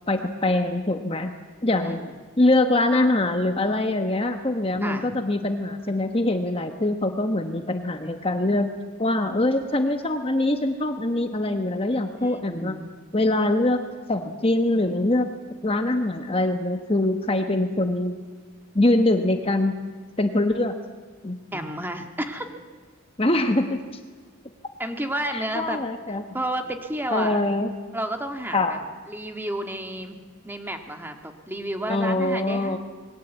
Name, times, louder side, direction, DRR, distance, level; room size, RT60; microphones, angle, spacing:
voice 1, 0.1-1.3 1.6-2.1 2.4-8.7 9.0-12.8 13.1-13.8 14.1-18.2 18.7-19.7 20.2-20.7 21.2-21.7 23.2-23.8 25.3-26.2 27.1-27.7 28.5-28.8 31.9-32.8, left 2 dB, 25° left, 6 dB, 1.1 m, -23 dB
voice 2, 4.7-5.2 12.2-12.8 21.5-22.5 24.8-25.8 26.3-27.4 27.9-28.8 29.1-32.8, right 1 dB, 10° right, 5 dB, 1.7 m, -31 dB
26.5 x 21.0 x 8.2 m, 1.5 s
head